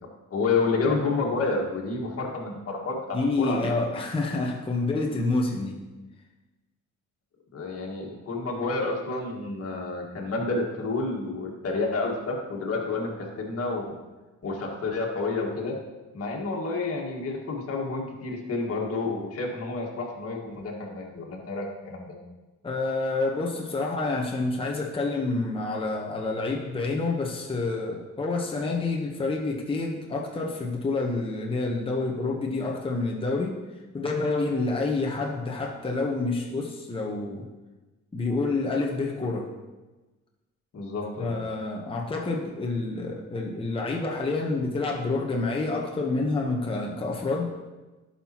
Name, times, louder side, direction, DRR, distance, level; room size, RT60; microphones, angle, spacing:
voice 1, 0.3-3.7 7.5-13.9 14.4-15.8 16.1-22.1 40.7-41.3, left 3 dB, 50° left, -1 dB, 1.8 m, -29 dB
voice 2, 3.1-5.8 22.6-33.6 33.9-37.5 38.1-39.5 41.2-47.5, left 3 dB, 20° left, -1 dB, 1.0 m, -28 dB
11.5 x 5.7 x 3.0 m, 1.2 s
cardioid pair, 90°, 30 cm